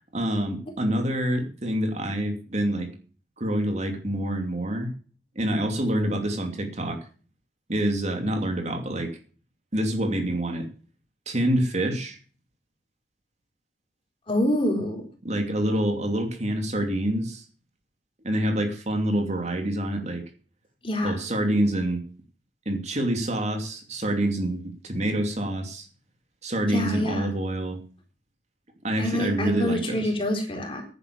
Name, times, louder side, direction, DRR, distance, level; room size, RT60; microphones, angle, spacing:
voice 1, 0.1-2.9 3.4-4.9 5.3-7.0 7.7-9.1 9.7-10.7 11.3-12.2 15.2-17.4 18.2-20.2 21.0-22.0 22.7-25.9 26.4-27.8 28.8-30.1, right 1 dB, 40° right, 5 dB, 2.9 m, -26 dB
voice 2, 14.3-15.0 20.8-21.2 26.7-27.3 29.0-30.9, left 1 dB, 30° left, 3 dB, 4.1 m, -26 dB
11.0 x 10.0 x 6.9 m, 0.40 s
head